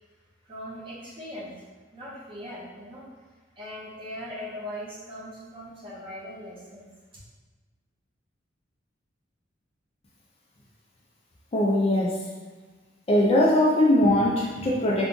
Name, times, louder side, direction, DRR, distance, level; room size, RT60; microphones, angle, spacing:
voice 1, 0.4-1.5 1.9-3.0 3.6-6.9, equal, 25° right, -7 dB, 0.9 m, -39 dB
voice 2, 11.5-12.3 13.1-15.1, left 1 dB, 30° left, -5 dB, 0.5 m, -21 dB
3.5 x 2.4 x 3.8 m, 1.3 s
head